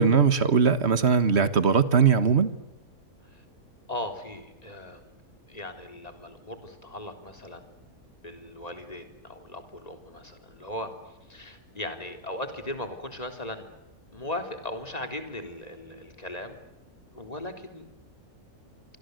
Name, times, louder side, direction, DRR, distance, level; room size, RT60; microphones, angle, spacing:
voice 1, 0.0-2.5, right 5 dB, 45° right, 12 dB, 1.8 m, -20 dB
voice 2, 3.9-5.0 5.5-7.7 8.2-10.9 11.3-13.7 14.1-16.6 17.1-17.8, left 1 dB, 25° left, 6 dB, 3.8 m, -38 dB
27.5 x 25.0 x 8.1 m, 0.98 s
omnidirectional pair, 1.6 m